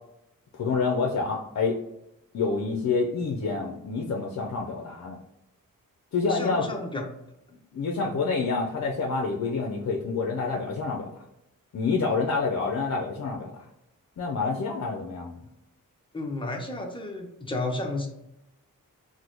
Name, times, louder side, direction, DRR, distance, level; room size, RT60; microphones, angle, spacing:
voice 1, 0.5-1.8 2.3-5.2 6.1-6.8 7.7-11.1 11.7-13.5 14.2-15.4, left 4 dB, 55° left, 0 dB, 0.5 m, -27 dB
voice 2, 6.3-7.0 8.0-8.1 16.1-18.1, left 2 dB, 15° left, 2 dB, 0.6 m, -32 dB
3.8 x 2.1 x 3.0 m, 0.86 s
wide cardioid pair, 95°, 34 cm